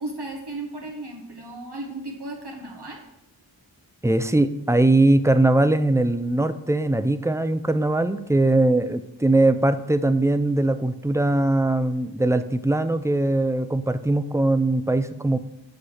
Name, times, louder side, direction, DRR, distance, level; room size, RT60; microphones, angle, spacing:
voice 1, 0.0-3.0, right 2 dB, 55° right, -1 dB, 1.3 m, -35 dB
voice 2, 4.0-15.4, right 2 dB, 5° right, 11 dB, 0.4 m, -21 dB
8.5 x 3.2 x 6.4 m, 0.85 s
wide cardioid pair, 45°, 46 cm